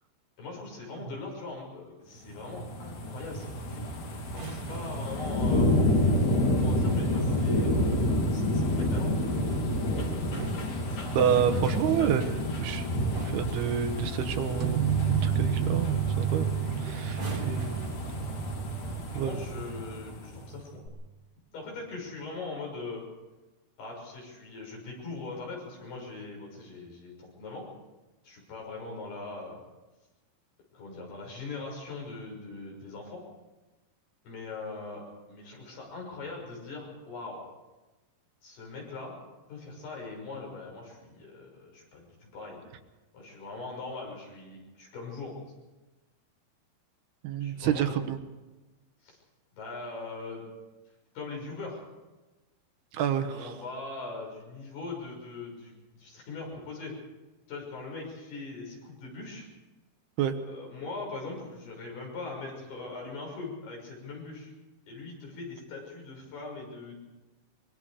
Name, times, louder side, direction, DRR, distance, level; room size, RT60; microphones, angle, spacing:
voice 1, 0.4-3.9 4.3-5.7 6.5-8.0 8.3-9.3 10.9-12.3 17.1-17.6 19.0-20.8 21.5-23.0 23.8-27.7 28.2-29.6 30.7-33.2 34.2-35.0 35.3-37.4 38.4-39.2 39.5-42.6 43.1-45.3 47.4-48.1 49.0-49.2 49.5-50.4 51.1-51.8 53.0-56.9 57.5-59.5 60.3-64.5 64.9-67.0, left 3 dB, 75° left, -1 dB, 8.4 m, -41 dB
sound 1, 2.3-20.4 20.9-21.0, left 1 dB, 55° left, 4.2 m, -29 dB
sound 2, 4.2-5.2 7.3-7.9 10.1-11.5 12.5-12.7 13.1-13.6 15.3-15.5 15.8-16.1 17.0-18.7 19.6-19.9, right 4 dB, 40° right, 1.2 m, -43 dB
voice 2, 11.1-12.9 13.3-14.8 15.1-16.5 16.8-17.8 19.1-19.4 47.2-48.2 52.9-53.5 60.2-60.4, right 9 dB, 80° right, 8 dB, 3.2 m, -29 dB
sound 3, 14.6-20.1, right 10 dB, 65° right, 2.2 m, -31 dB
24.0 x 23.5 x 5.1 m, 1.1 s
omnidirectional pair, 4.6 m